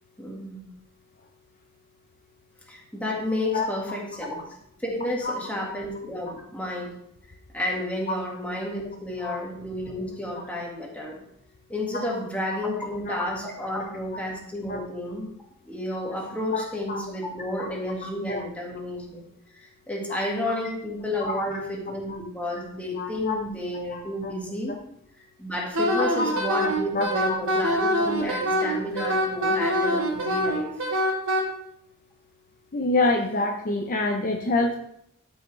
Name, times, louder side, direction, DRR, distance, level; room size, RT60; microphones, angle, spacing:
voice 1, 0.2-0.7 2.7-4.4 4.8-6.9 7.5-11.2 11.7-15.3 15.7-19.2 19.5-24.8 25.4-30.7, left 1 dB, 5° left, -2 dB, 1.8 m, -31 dB
voice 2, 16.5-17.0 18.3-18.4 21.2-21.3 22.1-22.2 23.0-23.4 23.7-24.3 26.2-26.3 27.0-27.4 28.2-28.3 29.0-29.1 32.7-34.7, left 2 dB, 40° left, 3 dB, 0.7 m, -27 dB
Wind instrument woodwind instrument, 25.7-31.4, equal, 70° right, 1.5 m, -24 dB
12.5 x 5.7 x 3.2 m, 0.73 s
head